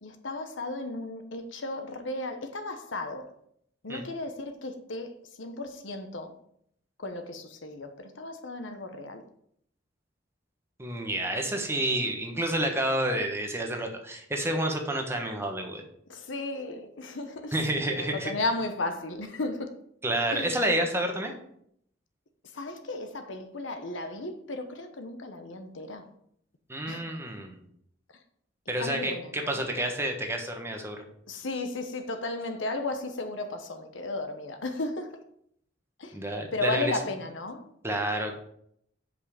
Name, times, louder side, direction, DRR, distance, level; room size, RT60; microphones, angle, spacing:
voice 1, 0.0-3.3 3.8-6.3 7.0-9.2 16.1-19.8 20.3-20.5 22.5-26.1 26.9-27.0 28.8-29.6 31.3-35.2 36.0-36.2 36.5-37.7, left 2 dB, 70° left, 0.9 m, -35 dB
voice 2, 10.8-15.8 17.5-18.3 20.0-21.3 26.7-27.6 28.7-31.0 36.1-36.9 37.8-38.3, right 1 dB, 15° right, 1.1 m, -29 dB
5.5 x 5.2 x 6.6 m
head